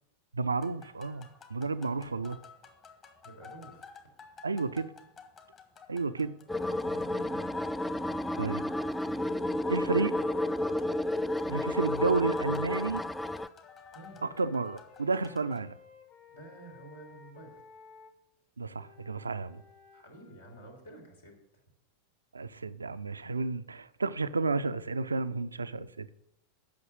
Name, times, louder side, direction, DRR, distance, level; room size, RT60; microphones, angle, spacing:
voice 1, 0.3-2.4 4.4-4.9 5.9-6.3 8.4-8.7 9.7-10.1 11.5-13.0 14.4-15.7 18.6-19.6 22.3-26.1, right 3 dB, 75° right, 0.5 m, -31 dB
sound 1, 0.5-15.6, left 5 dB, 30° left, 1.5 m, -55 dB
voice 2, 3.2-3.9 6.8-7.7 13.9-14.2 16.3-17.6 19.9-21.4, right 2 dB, 75° left, 3.2 m, -50 dB
sound 2, 6.5-13.5, left 1 dB, 5° left, 0.3 m, -31 dB
Wind instrument woodwind instrument, 11.5-12.9 13.6-18.1 18.7-20.7, left 7 dB, 45° left, 1.6 m, -55 dB
8.6 x 6.2 x 7.6 m
figure-of-eight pair, 90°, 0 cm